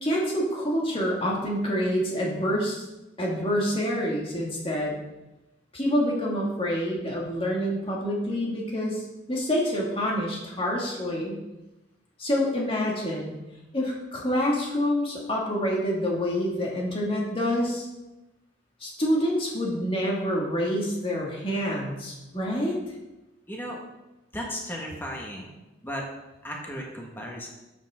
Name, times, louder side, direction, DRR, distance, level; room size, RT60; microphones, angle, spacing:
voice 1, 0.0-2.8 3.2-5.0 5.7-11.4 12.2-13.3 13.7-17.9 18.8-22.8, equal, 30° left, -3 dB, 2.3 m, -27 dB
voice 2, 23.5-23.8 24.3-25.5 25.8-26.0 26.4-27.5, equal, 10° left, -2 dB, 1.7 m, -35 dB
12.0 x 7.9 x 3.8 m, 1.0 s
head